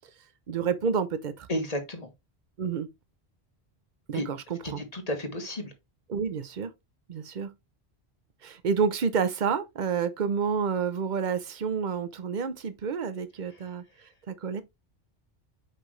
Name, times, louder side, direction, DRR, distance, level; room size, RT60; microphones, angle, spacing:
voice 1, 0.5-1.5 2.6-2.9 4.1-4.8 6.1-6.7 7.1-7.5 8.4-13.8 14.3-14.6, right 6 dB, 50° right, 0.9 m, -29 dB
voice 2, 1.5-2.1 4.1-4.3 4.6-5.7 13.5-13.7, left 1 dB, 35° left, 1.5 m, -33 dB
5.9 x 5.4 x 3.2 m
omnidirectional pair, 1.1 m